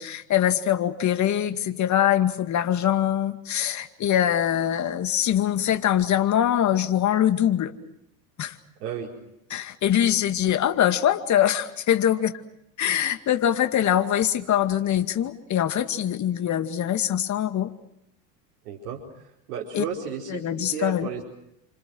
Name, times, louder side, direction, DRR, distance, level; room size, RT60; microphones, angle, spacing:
voice 1, 0.0-7.7 8.4-8.6 9.5-12.3 12.8-17.7 19.7-19.8 20.3-21.1, left 10 dB, 35° left, 8 dB, 2.2 m, -23 dB
voice 2, 8.8-9.1 18.6-19.0 19.5-21.2, right 7 dB, 70° right, -1 dB, 4.8 m, -33 dB
29.5 x 27.0 x 6.4 m, 0.79 s
hypercardioid pair, 95°, 48 cm